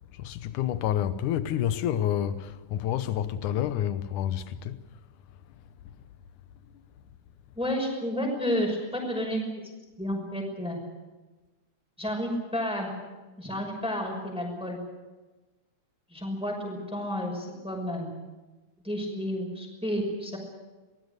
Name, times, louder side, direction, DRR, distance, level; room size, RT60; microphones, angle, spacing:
voice 1, 0.1-4.8, left 10 dB, 90° left, 2.5 m, -29 dB
voice 2, 7.6-9.5 10.0-10.8 12.0-12.9 13.4-14.8 16.1-18.1 18.8-20.4, equal, ahead, 5.7 m, -31 dB
25.5 x 19.5 x 6.9 m
omnidirectional pair, 3.6 m